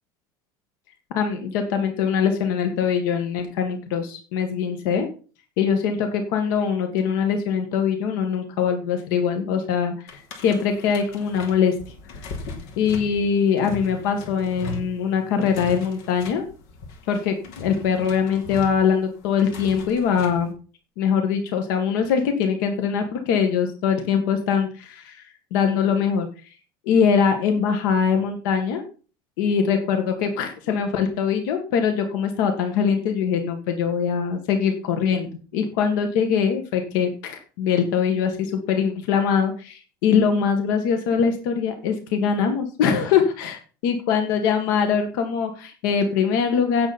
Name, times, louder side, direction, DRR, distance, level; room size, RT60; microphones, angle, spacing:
voice 1, 1.1-5.1 5.6-11.8 12.8-16.4 17.1-20.5 21.0-25.2 25.5-26.3 26.9-28.8 29.4-46.9, left 7 dB, 85° left, 6 dB, 1.9 m, -22 dB
sound 1, 10.1-20.5, left 4 dB, 70° left, 3.2 m, -38 dB
16.5 x 7.3 x 4.3 m, 0.38 s
cardioid pair, 175°, 10 cm